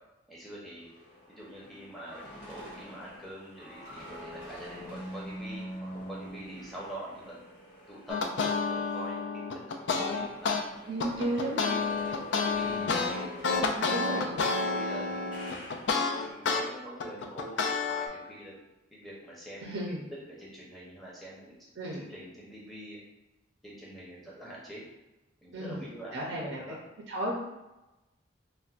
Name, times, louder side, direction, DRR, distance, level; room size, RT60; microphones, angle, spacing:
voice 1, 0.3-0.9 1.3-7.4 7.9-8.2 8.5-9.5 9.7-10.6 11.2-11.3 11.6-13.3 13.9-15.3 16.1-18.5 18.9-20.0 20.3-21.5 21.9-23.0 23.6-24.9 25.4-26.8, right 1 dB, ahead, -6 dB, 0.7 m, -45 dB
sound 1, 0.7-9.1 9.5-16.3, equal, 25° left, 1.1 m, -46 dB
sound 2, 8.1-10.6 11.0-16.6 17.0-18.1, left 4 dB, 65° left, 0.3 m, -29 dB
voice 2, 10.9-11.7 13.6-14.3 19.6-20.0 21.8-22.0 25.5-25.9 26.1-26.6 27.1-27.4, right 1 dB, 70° right, -2 dB, 0.5 m, -34 dB
4.2 x 2.1 x 2.4 m, 1.0 s
head